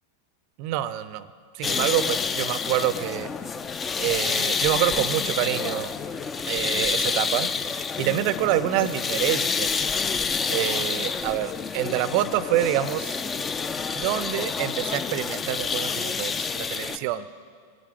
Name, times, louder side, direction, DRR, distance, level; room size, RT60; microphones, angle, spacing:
voice 1, 0.6-1.3 1.5-3.3 4.0-5.9 6.5-7.5 8.0-9.8 10.5-13.2 13.9-17.3, right 13 dB, 45° right, 17 dB, 0.5 m, -26 dB
sound 1, 1.6-17.0, left 5 dB, 20° left, 0.5 m, -28 dB
20.0 x 10.0 x 3.3 m, 2.2 s
figure-of-eight pair, 90°, 0 cm